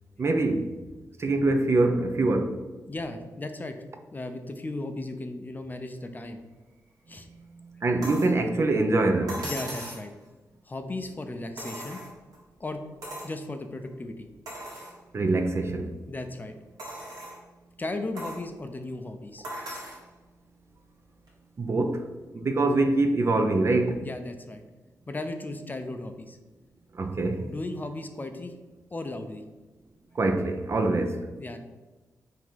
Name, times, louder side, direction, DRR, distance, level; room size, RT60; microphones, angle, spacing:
voice 1, 0.2-0.7 1.2-2.6 7.8-9.4 15.1-15.9 21.6-22.1 22.3-24.0 26.9-27.5 30.2-31.2, right 2 dB, 40° right, 0.5 m, -24 dB
voice 2, 2.9-3.8 4.1-6.4 7.1-7.3 9.4-10.1 10.7-12.0 12.6-12.8 13.2-14.3 16.1-16.6 17.8-19.4 24.0-24.6 25.1-26.4 27.4-28.5 28.9-29.4 31.4-31.6, left 2 dB, 25° left, 0.5 m, -36 dB
sound 1, 8.0-8.4 9.3-10.1 11.6-12.4 13.0-13.4 13.9-14.0 14.5-15.0 15.6-15.7 16.8-17.4 18.2-18.4 19.4-20.0 21.3-21.4, right 1 dB, 75° right, 1.5 m, -38 dB
3.9 x 2.7 x 4.6 m
cardioid pair, 60°, 7 cm